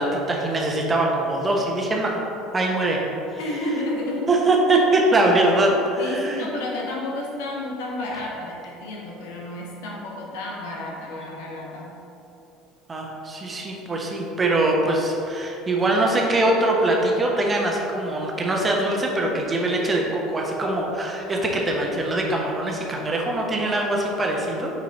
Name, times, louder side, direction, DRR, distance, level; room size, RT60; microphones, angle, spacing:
voice 1, 0.0-2.2 2.5-3.0 3.3-3.4 4.3-6.5 12.9-24.7, right 2 dB, 25° right, -1 dB, 1.1 m, -22 dB
voice 2, 3.4-4.4 5.6-12.0, left 1 dB, 65° left, -2 dB, 1.1 m, -31 dB
6.0 x 4.5 x 4.1 m, 2.9 s
figure-of-eight pair, 65°, 0 cm